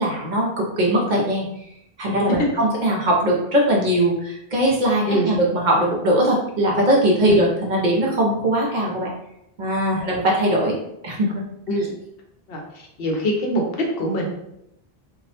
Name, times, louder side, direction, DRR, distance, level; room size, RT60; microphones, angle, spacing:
voice 1, 0.0-1.5 2.0-9.1 9.6-10.8 11.0-11.4, right 1 dB, 55° right, -2 dB, 0.6 m, -20 dB
voice 2, 12.5-13.6 14.0-14.3, right 1 dB, 70° left, 0 dB, 0.8 m, -24 dB
2.3 x 2.0 x 2.7 m, 0.80 s
omnidirectional pair, 1.0 m